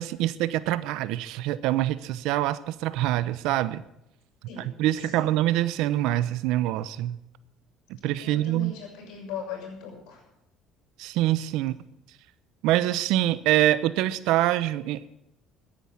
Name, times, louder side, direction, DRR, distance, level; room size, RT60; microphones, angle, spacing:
voice 1, 0.0-3.8 4.6-7.2 8.0-8.7 11.0-11.8 12.6-15.1, right 14 dB, 80° right, 16 dB, 0.8 m, -25 dB
voice 2, 4.5-5.4 8.2-10.2, left 6 dB, 80° left, 2 dB, 6.3 m, -39 dB
14.0 x 10.0 x 8.8 m, 0.86 s
supercardioid pair, 95°, 0 cm